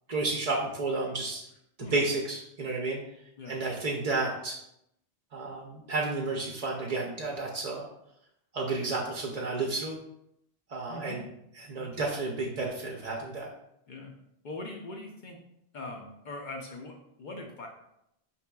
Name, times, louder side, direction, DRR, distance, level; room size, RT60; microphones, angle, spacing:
voice 1, 0.1-1.5 1.8-3.0 3.5-4.6 5.3-7.9 8.5-10.0 10.7-11.2 11.6-13.5, right 3 dB, 50° right, -1 dB, 0.5 m, -31 dB
voice 2, 10.9-11.2 11.8-12.1 13.9-14.1 14.4-15.4 15.7-17.7, left 2 dB, 55° left, 2 dB, 0.6 m, -41 dB
5.6 x 2.9 x 2.2 m, 0.79 s
omnidirectional pair, 1.1 m